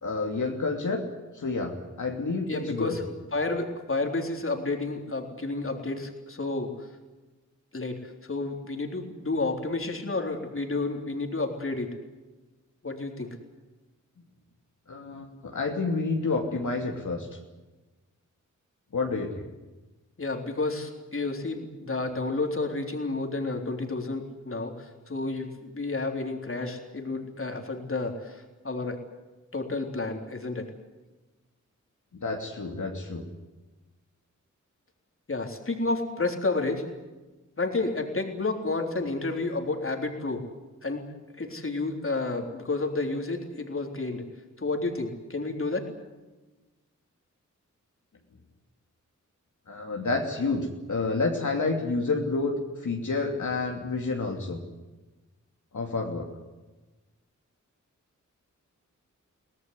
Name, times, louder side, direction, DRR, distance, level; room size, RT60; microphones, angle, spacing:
voice 1, 0.0-1.0 1.3-3.0 14.9-17.3 18.9-19.5 32.1-33.2 49.7-52.5 52.8-54.6 55.7-56.3, left 3 dB, 70° left, 1 dB, 2.9 m, -29 dB
voice 2, 2.5-3.0 3.3-6.9 7.7-12.0 12.8-13.4 20.2-29.0 29.5-30.7 35.3-36.9 37.6-40.4 40.8-41.1 41.4-44.2 44.6-45.9, left 3 dB, 45° left, 3 dB, 3.6 m, -30 dB
23.5 x 18.0 x 9.8 m, 1.1 s
wide cardioid pair, 80°, 31 cm